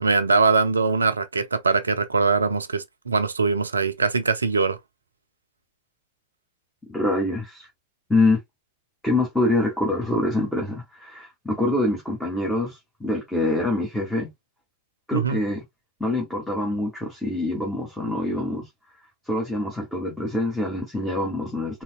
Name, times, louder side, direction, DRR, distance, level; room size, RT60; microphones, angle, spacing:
voice 1, 0.0-4.8 15.1-15.4, right 4 dB, 75° right, 0.5 m, -22 dB
voice 2, 6.9-7.7 8.1-8.4 9.0-14.3 15.1-15.6 16.0-18.7 19.3-21.8, left 2 dB, 5° left, 1.4 m, -25 dB
3.9 x 2.8 x 2.3 m
figure-of-eight pair, 90°, 0 cm